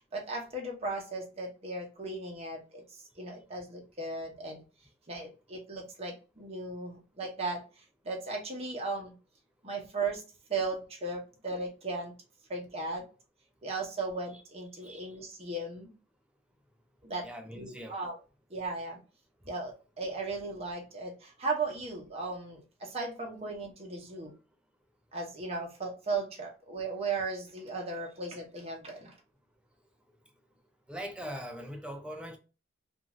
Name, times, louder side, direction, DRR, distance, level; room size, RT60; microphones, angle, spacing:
voice 1, 0.0-4.6 5.1-9.1 9.6-10.2 10.5-12.1 12.5-13.1 13.6-15.9 17.0-17.3 17.5-18.2 18.5-19.0 19.4-24.3 25.1-29.2, right 3 dB, 30° right, 0.8 m, -36 dB
voice 2, 17.2-18.0 30.9-32.4, equal, 5° right, 0.4 m, -41 dB
2.5 x 2.4 x 3.0 m
head